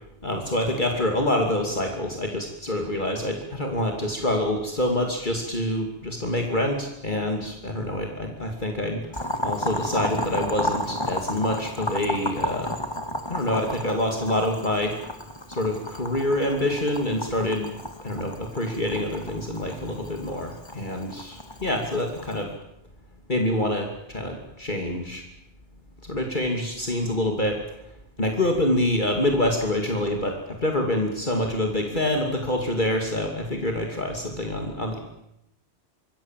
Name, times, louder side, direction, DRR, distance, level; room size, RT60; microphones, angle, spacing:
voice 1, 0.2-9.0 9.4-12.8 13.3-14.9 15.5-17.7 18.0-22.5 23.3-25.2 26.0-27.6 28.2-35.0, left 1 dB, 45° left, 2 dB, 3.0 m, -26 dB
Boiling, 9.1-22.4, left 1 dB, 25° left, 2.1 m, -33 dB
26.0 x 22.0 x 7.6 m, 0.83 s
omnidirectional pair, 1.1 m